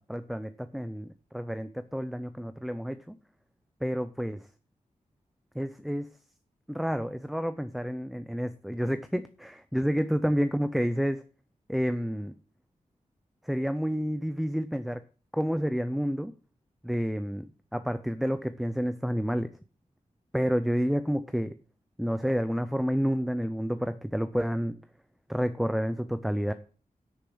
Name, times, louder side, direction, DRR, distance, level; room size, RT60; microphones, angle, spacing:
voice 1, 0.0-3.1 3.8-4.4 5.6-6.1 6.7-11.2 11.7-12.3 13.4-15.0 15.3-16.3 16.8-19.5 20.3-21.5 22.0-24.8 25.3-26.5, equal, ahead, 11 dB, 0.5 m, -29 dB
9.8 x 6.5 x 6.2 m, 0.38 s
wide cardioid pair, 165°, 14 cm